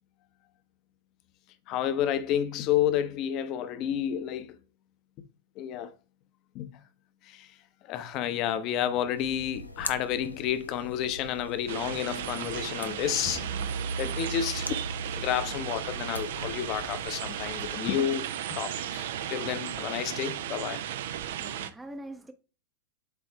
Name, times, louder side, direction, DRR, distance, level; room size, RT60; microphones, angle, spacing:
voice 1, 1.7-4.5 5.6-5.9 6.5-6.7 7.3-7.5 7.9-13.5 14.0-14.7 15.1-20.8, left 10 dB, 40° left, 0.8 m, -30 dB
sound 1, 9.2-17.7, left 1 dB, 85° left, 0.6 m, -43 dB
sound 2, 11.7-21.7, right 10 dB, 60° right, 0.5 m, -35 dB
sound 3, 13.2-18.3, right 4 dB, 90° right, 1.6 m, -39 dB
voice 2, 20.6-22.3, right 1 dB, 10° right, 0.7 m, -46 dB
8.3 x 3.6 x 3.2 m
figure-of-eight pair, 95°, 0 cm